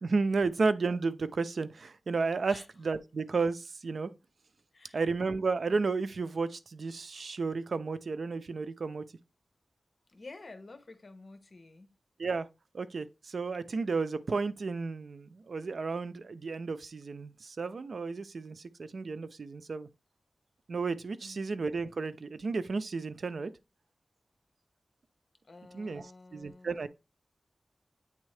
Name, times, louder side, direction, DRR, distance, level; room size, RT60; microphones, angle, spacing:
voice 1, 0.0-4.1 4.9-9.0 12.2-12.5 12.7-19.9 20.7-23.5 25.7-26.0 26.3-26.9, right 4 dB, 75° right, 0.4 m, -32 dB
voice 2, 10.1-11.9 21.2-21.5 25.4-26.8, left 3 dB, 50° left, 0.9 m, -50 dB
8.5 x 3.5 x 3.2 m
wide cardioid pair, 80°, 0 cm